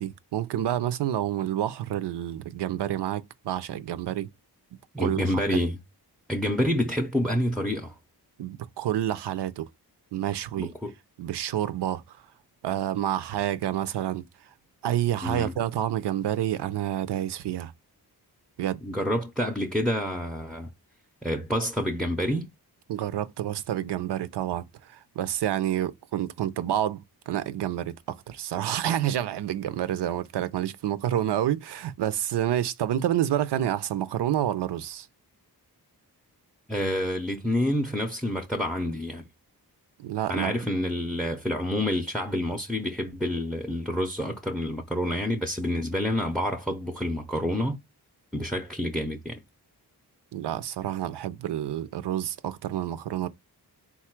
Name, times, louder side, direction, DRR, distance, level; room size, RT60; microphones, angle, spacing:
voice 1, 0.0-4.3 5.0-5.4 8.4-9.7 10.1-10.7 11.2-12.2 12.6-14.3 14.8-17.7 18.6-18.8 22.9-27.0 27.3-35.1 40.0-40.5 50.3-53.3, right 11 dB, 85° right, 0.5 m, -28 dB
voice 2, 4.9-5.8 6.3-7.9 10.6-10.9 15.2-15.5 18.8-20.7 21.2-22.5 36.7-39.2 40.3-47.8 48.3-49.4, left 1 dB, ahead, 0.4 m, -28 dB
4.1 x 2.3 x 4.4 m
wide cardioid pair, 125°, 40 cm